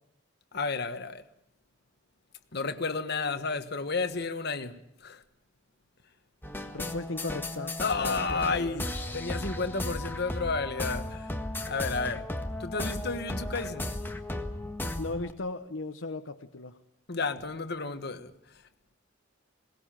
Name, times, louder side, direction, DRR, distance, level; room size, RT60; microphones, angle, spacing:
voice 1, 0.5-1.2 2.5-5.2 7.8-11.4 11.7-12.3 12.6-13.9 17.1-18.3, left 4 dB, 55° left, 1.4 m, -32 dB
sound 1, 6.4-15.3, left 1 dB, 10° left, 1.6 m, -35 dB
voice 2, 6.7-8.8 15.0-16.8, left 2 dB, 75° left, 1.0 m, -37 dB
21.5 x 18.5 x 8.9 m
head